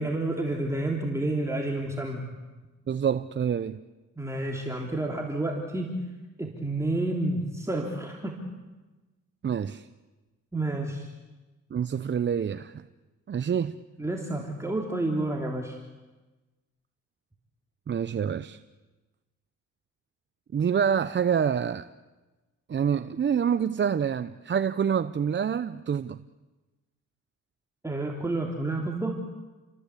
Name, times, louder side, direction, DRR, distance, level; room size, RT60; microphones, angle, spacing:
voice 1, 0.0-2.4 4.2-6.0 6.4-8.4 10.5-11.1 14.0-15.8 27.8-29.1, right 2 dB, 10° right, 0 dB, 3.3 m, -30 dB
voice 2, 2.9-3.8 9.4-9.9 11.7-12.7 13.3-13.8 17.9-18.6 20.5-21.9 22.7-26.2, right 7 dB, 40° right, 12 dB, 0.8 m, -27 dB
29.5 x 22.0 x 8.4 m, 1.2 s
cardioid pair, 90°, 30 cm